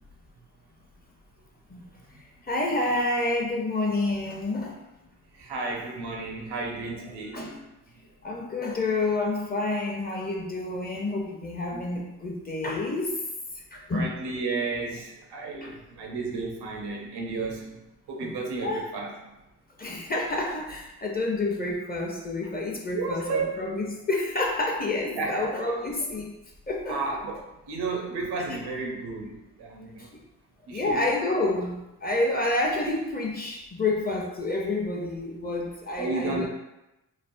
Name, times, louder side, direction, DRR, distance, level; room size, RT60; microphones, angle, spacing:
voice 1, 1.8-2.2 5.3-7.6 11.7-11.9 13.7-17.8 18.1-19.1 22.9-23.6 25.1-25.5 26.9-27.4 27.7-30.1 30.7-31.1 36.0-36.5, right 3 dB, 80° right, 0 dB, 0.7 m, -32 dB
voice 2, 2.4-4.8 7.3-7.5 8.2-13.2 13.7-14.1 15.6-15.7 18.2-18.4 18.6-18.8 19.8-26.3 26.7-27.0 30.0-30.2 30.7-36.5, left 2 dB, 25° left, -1 dB, 0.6 m, -29 dB
3.2 x 2.0 x 2.5 m, 0.94 s
cardioid pair, 55°, 39 cm